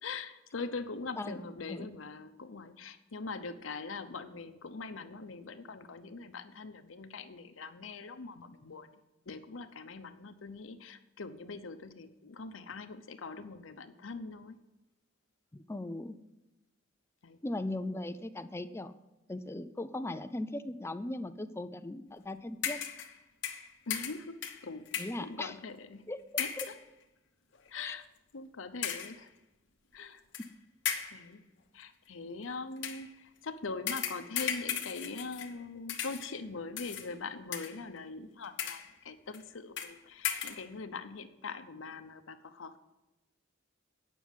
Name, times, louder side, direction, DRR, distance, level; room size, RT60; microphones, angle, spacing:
voice 1, 0.0-9.0 9.3-14.6 17.2-17.4 23.9-24.9 25.2-26.1 26.4-26.7 27.7-28.1 28.3-29.3 29.9-30.2 31.1-31.4 31.7-42.8, left 4 dB, 85° left, 10 dB, 0.7 m, -42 dB
voice 2, 15.5-16.2 17.4-18.9 19.3-22.8 25.0-25.6 26.1-26.2 27.8-28.0, left 2 dB, 15° left, 11 dB, 0.4 m, -38 dB
sound 1, 22.6-23.2 23.4-25.3 26.4-26.8 27.5-27.7 28.8-29.2 30.3-30.5 30.9-31.3 32.8-33.1 33.9-35.6 35.9-36.4 36.8-37.1 37.5-38.0 38.4-38.9 39.3-39.4 39.8-40.0 40.2-40.7, left 8 dB, 65° left, 1.1 m, -36 dB
9.1 x 6.1 x 7.3 m, 0.99 s
head